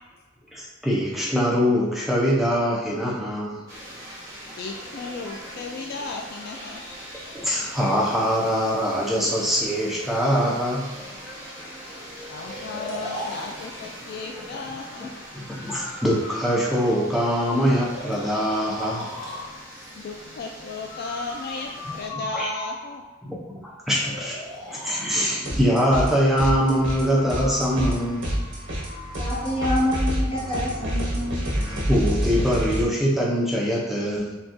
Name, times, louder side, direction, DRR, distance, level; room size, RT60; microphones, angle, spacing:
voice 1, 0.5-3.6 7.3-10.9 14.5-14.6 15.0-15.1 15.3-19.1 22.3-22.5 23.2-24.4 24.7-28.4 31.0-34.4, equal, ahead, -4 dB, 0.5 m, -23 dB
sound 1, 3.7-22.1, equal, 15° right, 1.2 m, -41 dB
voice 2, 4.6-6.8 12.3-15.1 19.8-23.0, left 3 dB, 50° left, 2 dB, 0.3 m, -35 dB
Breathing, 12.4-14.2 15.5-17.2 17.7-19.5 20.9-23.1 23.9-25.1 26.7-29.6, left 1 dB, 85° left, 1.1 m, -38 dB
sound 2, 25.4-26.1 26.4-32.8, equal, 70° right, 1.2 m, -27 dB
voice 3, 29.2-31.4, left 1 dB, 25° left, -4 dB, 1.0 m, -27 dB
5.9 x 2.3 x 2.6 m, 1.2 s
head